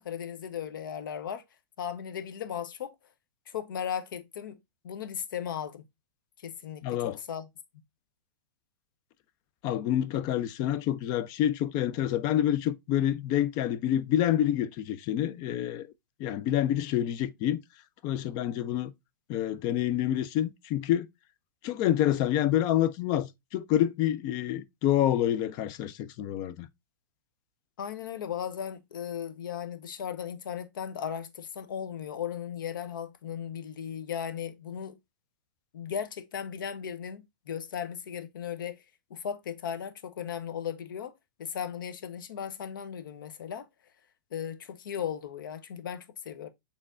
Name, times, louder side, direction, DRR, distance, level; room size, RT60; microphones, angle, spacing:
voice 1, 0.0-1.4 1.8-2.9 3.5-4.6 4.8-5.8 6.4-7.5 27.8-35.0 35.7-38.8 39.1-41.1 41.4-43.6 44.3-46.5, left 8 dB, 70° left, 0.8 m, -36 dB
voice 2, 6.8-7.2 9.6-15.9 16.2-17.6 18.0-18.9 19.3-21.1 21.6-26.7, left 11 dB, 35° left, 0.5 m, -27 dB
5.2 x 3.3 x 2.4 m
hypercardioid pair, 130°, 11 cm